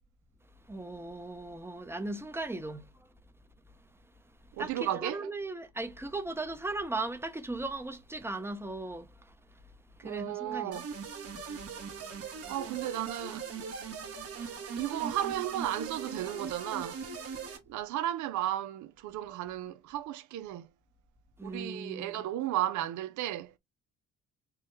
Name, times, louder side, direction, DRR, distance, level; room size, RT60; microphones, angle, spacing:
voice 1, 0.6-3.1 3.7-3.9 4.2-10.9 11.3-12.5 14.4-14.8 21.4-22.3, right 2 dB, 10° right, 0.7 m, -39 dB
voice 2, 4.5-5.2 10.0-10.9 12.5-13.4 14.8-17.0 17.7-20.7 21.4-23.5, right 12 dB, 70° right, 0.5 m, -34 dB
sound 1, 10.7-17.6, right 5 dB, 50° right, 1.3 m, -40 dB
4.7 x 2.2 x 3.2 m
cardioid pair, 80°, 30 cm